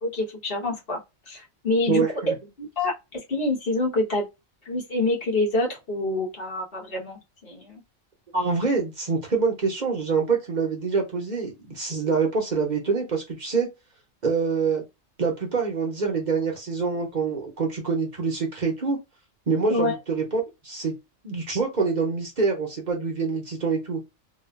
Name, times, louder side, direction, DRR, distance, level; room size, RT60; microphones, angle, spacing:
voice 1, 0.0-1.0 1.3-2.0 2.6-4.2 4.6-7.8 19.7-20.0, left 2 dB, 45° left, 1.2 m, -26 dB
voice 2, 1.9-2.3 8.3-13.7 14.2-14.8 15.2-19.0 19.5-20.9 21.2-24.0, right 5 dB, 40° right, 0.8 m, -25 dB
2.9 x 2.3 x 2.3 m
omnidirectional pair, 1.4 m